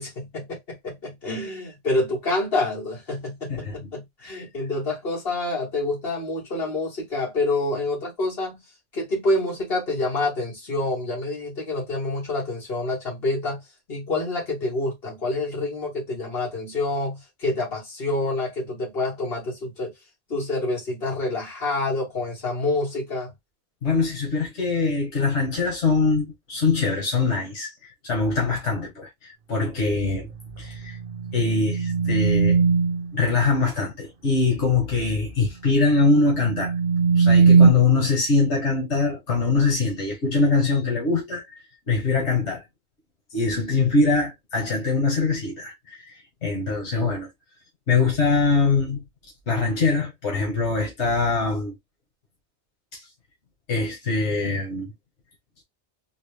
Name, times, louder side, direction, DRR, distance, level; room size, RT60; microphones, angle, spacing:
voice 1, 0.0-8.6 8.9-13.6 13.9-19.9 20.3-23.3, left 2 dB, 60° left, 2.0 m, -27 dB
voice 2, 23.8-27.7 28.0-30.3 30.6-31.0 31.3-32.6 33.1-36.7 37.1-41.4 41.9-42.6 43.3-47.3 47.9-49.0 49.5-51.7 52.9-53.0 53.7-54.9, left 3 dB, 90° left, 1.6 m, -23 dB
sound 1, 30.9-33.1 36.1-37.7, right 5 dB, 55° right, 0.8 m, -19 dB
3.9 x 2.3 x 3.2 m
omnidirectional pair, 1.1 m